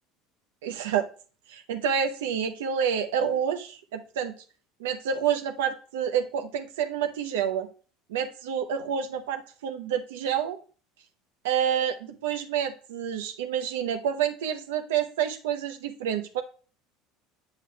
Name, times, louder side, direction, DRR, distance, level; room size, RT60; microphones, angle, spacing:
voice 1, 0.6-1.1 1.5-4.3 4.8-7.7 8.1-10.6 11.4-16.4, right 8 dB, 80° right, 7 dB, 0.7 m, -28 dB
7.7 x 7.3 x 2.3 m, 0.38 s
hypercardioid pair, 85°, 0 cm